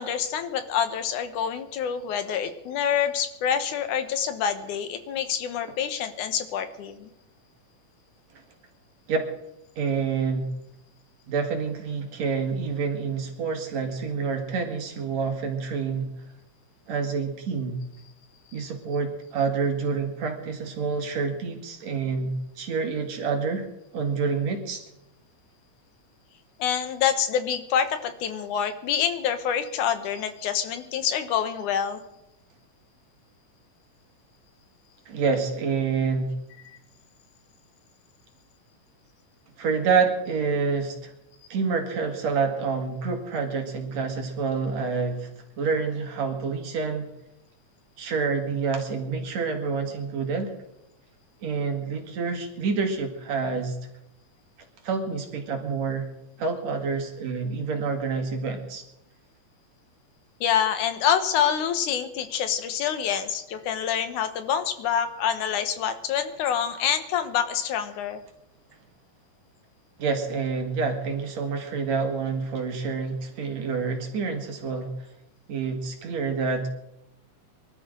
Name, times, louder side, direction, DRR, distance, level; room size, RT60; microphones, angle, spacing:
voice 1, 0.0-7.1 18.6-18.7 26.6-32.0 60.4-68.2, left 8 dB, 90° left, 9 dB, 2.7 m, -26 dB
voice 2, 9.8-10.5 11.3-16.1 16.9-17.8 18.5-23.7 23.9-24.8 35.1-36.3 39.6-41.1 41.5-45.3 45.6-47.1 48.0-50.5 51.4-53.8 54.8-56.1 56.4-58.8 70.0-75.1 75.5-76.7, right 5 dB, 65° right, 3 dB, 3.1 m, -27 dB
24.0 x 12.5 x 3.8 m, 0.87 s
omnidirectional pair, 3.4 m